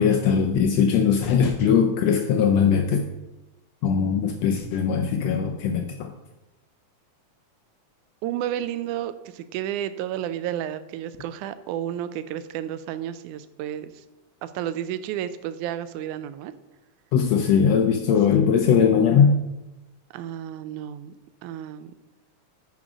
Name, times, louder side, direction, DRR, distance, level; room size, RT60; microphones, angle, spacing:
voice 1, 0.0-3.1 3.8-6.1 17.1-19.4, left 7 dB, 80° left, 5 dB, 1.5 m, -20 dB
voice 2, 8.2-14.0 14.4-16.5 20.1-21.1 21.4-21.9, right 11 dB, 85° right, 13 dB, 2.0 m, -31 dB
9.6 x 5.2 x 4.9 m, 1.0 s
omnidirectional pair, 3.5 m